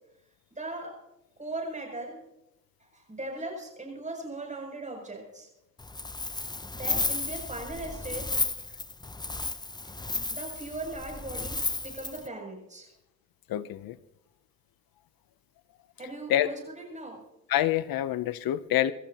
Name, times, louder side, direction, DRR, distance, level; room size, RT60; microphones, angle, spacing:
voice 1, 0.6-0.9 1.4-2.2 2.8-5.5 6.7-8.3 9.8-10.0 10.3-12.9 16.0-17.2, right 2 dB, 20° right, 1 dB, 7.4 m, -39 dB
Wind, 5.8-12.3, left 3 dB, 10° left, 0.7 m, -33 dB
voice 2, 13.5-14.0 16.3-16.5 17.5-18.9, left 13 dB, 80° left, 15 dB, 0.7 m, -26 dB
27.0 x 14.0 x 2.9 m, 0.87 s
cardioid pair, 85°, 35 cm